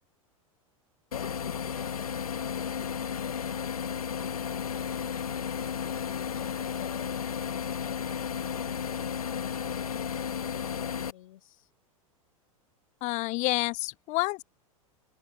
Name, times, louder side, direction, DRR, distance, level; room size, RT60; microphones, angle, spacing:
sound 1, 1.1-11.1, left 7 dB, 90° left, 1.5 m, -33 dB
voice 1, 1.1-4.2 5.9-9.2 9.9-11.7, left 14 dB, 70° left, 8.0 m, -51 dB
voice 2, 13.0-14.4, left 23 dB, 40° left, 0.5 m, -29 dB
hypercardioid pair, 95°, 18 cm